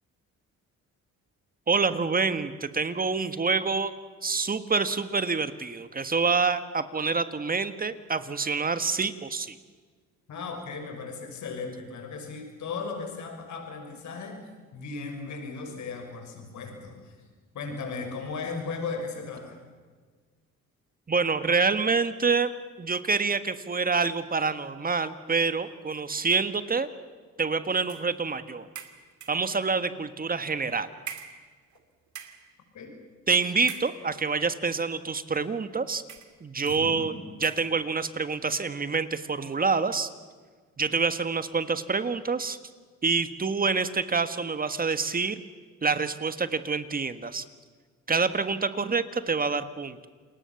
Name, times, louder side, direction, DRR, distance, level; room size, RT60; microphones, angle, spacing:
voice 1, 1.7-3.9 4.2-9.5 21.1-22.5 22.8-26.9 27.4-28.7 29.3-30.9 33.3-36.0 36.4-37.1 37.4-40.1 40.8-42.6 43.0-45.4 45.8-47.4 48.1-50.1, right 4 dB, 30° right, 12 dB, 1.6 m, -27 dB
voice 2, 10.3-17.2 17.5-19.6 32.7-33.0 36.6-37.2, left 4 dB, 70° left, 4 dB, 6.0 m, -37 dB
sound 1, 27.9-28.2 28.8-29.5 30.3-30.5 31.1-31.8 32.1-32.5 33.6-34.4 35.1-35.2 36.1-36.4 36.7-36.9 37.4-37.8, right 9 dB, 70° right, 2.7 m, -43 dB
29.0 x 21.0 x 7.1 m, 1.5 s
cardioid pair, 90°, 30 cm